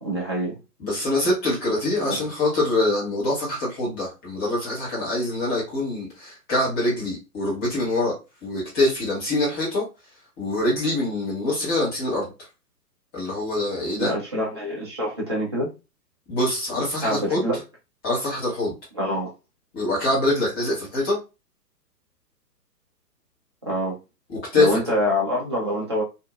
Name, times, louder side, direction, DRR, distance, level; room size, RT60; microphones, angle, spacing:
voice 1, 0.0-0.6 2.0-2.3 14.0-15.7 17.0-17.6 19.0-19.3 23.7-24.0 24.5-26.0, equal, 20° right, 0.4 m, -25 dB
voice 2, 0.8-8.1 8.4-9.8 10.4-12.3 13.1-14.1 16.3-17.4 18.0-18.7 19.7-21.2 24.3-24.8, left 2 dB, 20° left, 1.3 m, -24 dB
2.8 x 2.6 x 2.2 m
figure-of-eight pair, 125°, 49 cm